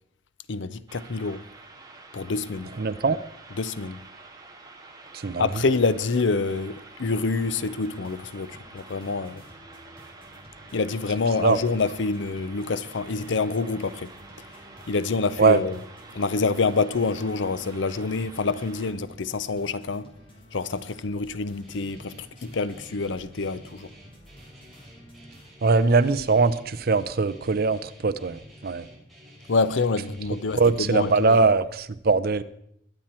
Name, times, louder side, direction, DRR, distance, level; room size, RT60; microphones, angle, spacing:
voice 1, 0.5-1.5 2.1-2.8 3.6-4.0 5.4-9.4 10.7-14.1 14.9-15.8 16.1-20.1 20.5-23.9 29.5-31.4, left 4 dB, 70° left, 0.6 m, -27 dB
sound 1, 0.9-18.9, right 3 dB, 20° right, 1.8 m, -48 dB
voice 2, 2.8-3.2 5.1-5.5 11.4-11.6 15.4-15.6 25.6-28.9 30.6-32.4, right 4 dB, 55° right, 0.6 m, -21 dB
sound 2, 7.3-25.5, equal, 25° left, 3.8 m, -52 dB
Guitar, 21.6-31.4, equal, ahead, 4.4 m, -50 dB
21.5 x 8.9 x 4.4 m
head